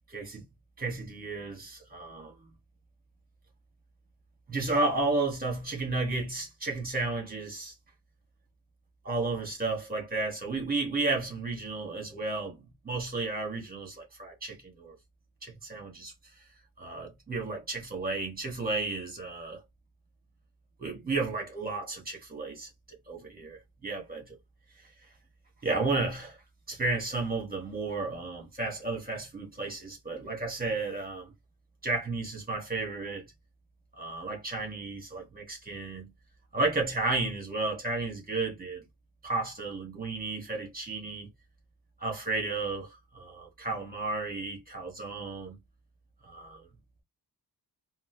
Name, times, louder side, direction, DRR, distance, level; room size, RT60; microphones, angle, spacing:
voice 1, 0.1-0.4 0.8-2.3 4.5-7.7 9.0-14.9 15.4-16.1 16.8-19.6 20.8-22.7 23.1-24.4 25.6-26.4 26.7-31.3 31.8-33.2 34.0-36.1 36.5-38.8 39.2-41.3 42.0-45.6 46.2-46.7, right 3 dB, 20° right, 1.3 m, -33 dB
4.1 x 2.0 x 2.7 m
wide cardioid pair, 145°, 41 cm